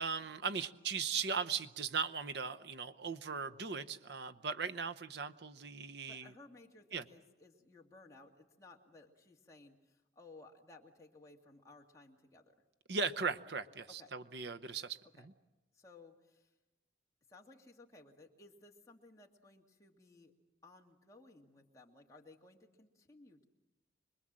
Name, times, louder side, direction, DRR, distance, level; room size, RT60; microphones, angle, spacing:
voice 1, 0.0-6.3 6.9-7.0 12.9-15.0, right 5 dB, 60° right, 9 dB, 0.8 m, -38 dB
voice 2, 6.1-12.5 13.9-14.1 15.2-15.3 15.7-16.5 17.3-20.3 20.6-23.4, left 2 dB, 15° left, 0 dB, 2.2 m, -59 dB
25.5 x 21.5 x 7.6 m, 1.0 s
head